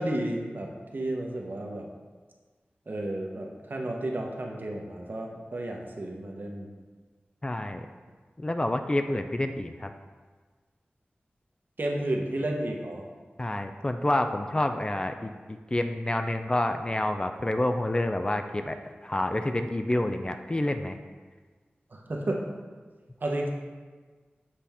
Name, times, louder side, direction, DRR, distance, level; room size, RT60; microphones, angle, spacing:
voice 1, 0.0-1.9 2.9-6.7 11.8-13.0 21.9-22.5 23.2-23.5, right 1 dB, 55° right, 0 dB, 0.9 m, -32 dB
voice 2, 7.4-7.9 8.4-9.9 13.4-18.8 19.0-21.0, left 1 dB, 25° left, 7 dB, 0.3 m, -28 dB
7.5 x 4.1 x 3.5 m, 1.4 s
wide cardioid pair, 65°, 4 cm